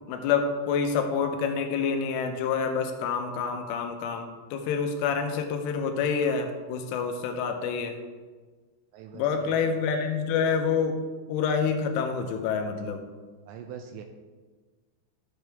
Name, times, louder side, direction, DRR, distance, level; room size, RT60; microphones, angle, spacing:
voice 1, 0.1-8.0 9.1-11.0 11.3-13.0, left 6 dB, 85° left, 5 dB, 3.4 m, -27 dB
voice 2, 8.9-9.6 13.5-14.0, right 8 dB, 80° right, 5 dB, 2.7 m, -42 dB
13.5 x 6.7 x 3.5 m, 1.4 s
omnidirectional pair, 5.5 m